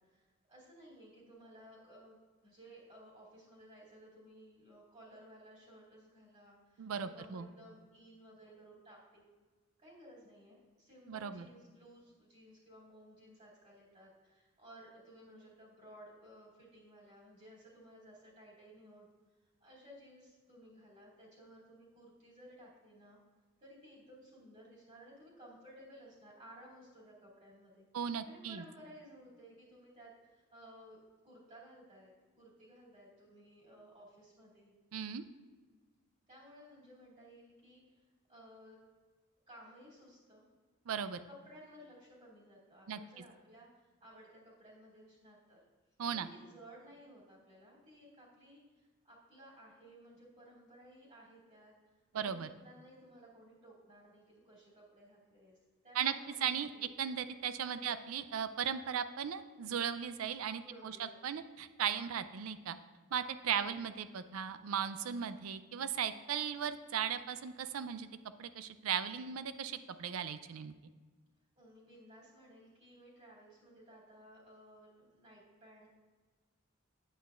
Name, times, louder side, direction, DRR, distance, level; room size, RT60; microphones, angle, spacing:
voice 1, 0.0-2.2 2.4-9.2 9.8-19.1 19.6-23.2 23.6-27.8 28.3-31.0 31.2-34.7 36.3-38.0 38.3-38.8 39.5-40.4 41.2-45.6 46.1-51.7 52.1-55.6 55.8-56.9 57.7-57.9 60.6-61.4 63.5-63.8 71.6-76.0, equal, 35° right, -7 dB, 2.6 m, -57 dB
voice 2, 6.8-7.5 11.1-11.4 27.9-28.6 34.9-35.2 40.9-41.2 42.9-43.2 46.0-46.3 52.1-52.5 55.9-56.1 56.4-62.8 63.1-68.1 68.4-70.7, right 8 dB, 85° right, 12 dB, 0.4 m, -37 dB
9.0 x 8.1 x 2.5 m, 1.4 s
head